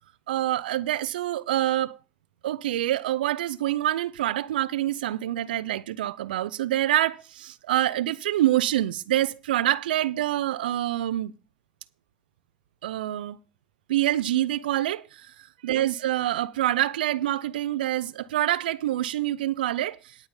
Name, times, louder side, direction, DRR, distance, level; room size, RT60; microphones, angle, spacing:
voice 1, 0.3-2.0 2.4-11.3 12.8-13.4 13.9-15.3 15.6-20.0, right 13 dB, 90° right, 0.5 m, -26 dB
11.5 x 5.2 x 7.1 m
hypercardioid pair, 85°, 5 cm